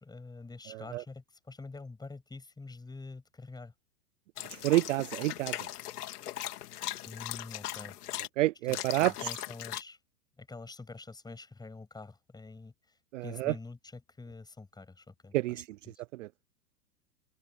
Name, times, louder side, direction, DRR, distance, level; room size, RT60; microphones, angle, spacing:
voice 1, 0.0-3.7 7.1-8.0 8.7-10.0 10.4-15.3 15.9-16.0, left 3 dB, 10° left, 7.1 m, -46 dB
voice 2, 0.7-1.0 4.5-5.7 8.4-9.3 13.1-13.5 15.3-15.7 16.1-16.3, right 17 dB, 50° right, 0.6 m, -29 dB
sound 1, 4.4-8.3 8.7-9.8, left 13 dB, 65° left, 2.8 m, -39 dB
open air
hypercardioid pair, 125°, 49 cm